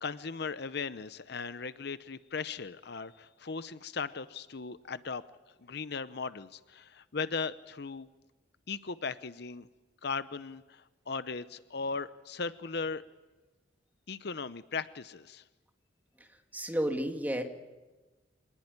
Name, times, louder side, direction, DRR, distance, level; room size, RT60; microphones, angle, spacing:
voice 1, 0.0-5.2 5.6-8.1 8.7-9.7 10.0-13.0 14.1-15.4, left 5 dB, 60° left, 14 dB, 0.8 m, -37 dB
voice 2, 16.5-17.4, equal, 10° right, 4 dB, 2.1 m, -31 dB
26.0 x 19.5 x 9.6 m, 1.2 s
head